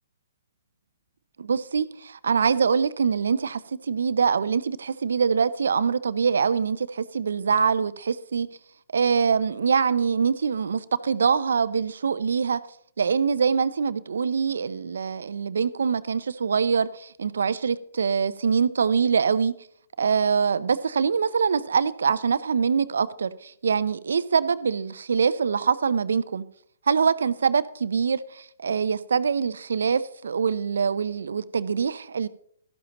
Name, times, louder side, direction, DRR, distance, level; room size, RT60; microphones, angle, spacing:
voice 1, 1.4-8.5 8.9-12.6 13.0-19.5 20.0-26.4 26.9-32.3, right 6 dB, 75° right, 0.6 m, -24 dB
12.5 x 10.5 x 3.0 m
hypercardioid pair, 130°, 0 cm